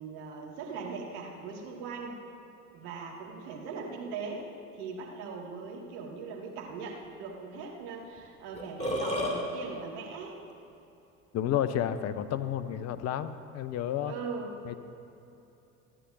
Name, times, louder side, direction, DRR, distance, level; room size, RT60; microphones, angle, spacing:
voice 1, 0.0-2.2 2.7-10.4 14.1-14.5, right 4 dB, 60° right, -1 dB, 2.1 m, -40 dB
Burping eructation, 8.2-8.3 8.5-9.4, left 1 dB, 15° left, 2.5 m, -30 dB
voice 2, 11.3-14.1 14.7-14.8, left 10 dB, 40° left, 12 dB, 0.8 m, -31 dB
27.5 x 9.9 x 2.7 m, 2.8 s
figure-of-eight pair, 60°, 39 cm